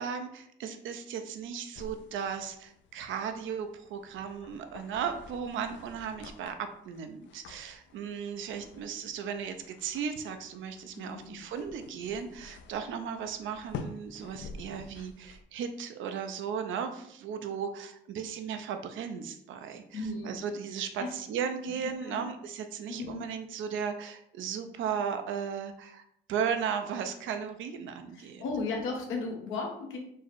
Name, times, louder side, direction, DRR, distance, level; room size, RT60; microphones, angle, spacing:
voice 1, 0.0-26.0 26.3-28.4, right 7 dB, 80° right, 7 dB, 0.5 m, -36 dB
sound 1, 1.7-15.4, left 4 dB, 70° left, 0.5 m, -49 dB
voice 2, 10.9-11.4 19.9-20.4 21.0-21.1 21.7-22.3 22.9-23.2 28.1-30.0, left 3 dB, 90° left, 1 dB, 1.1 m, -36 dB
4.6 x 2.0 x 4.5 m, 0.71 s
cardioid pair, 90°, 20 cm